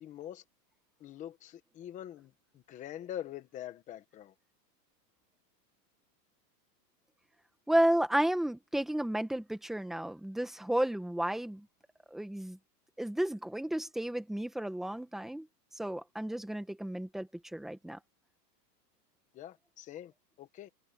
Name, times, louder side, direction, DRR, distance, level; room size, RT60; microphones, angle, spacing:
voice 1, 0.0-0.4 1.0-4.3 19.3-20.1 20.4-20.7, left 11 dB, 15° left, 1.0 m, -44 dB
voice 2, 7.7-11.7 12.1-12.6 13.0-15.5 15.7-18.0, right 1 dB, ahead, 0.7 m, -32 dB
supercardioid pair, 170°, 49 cm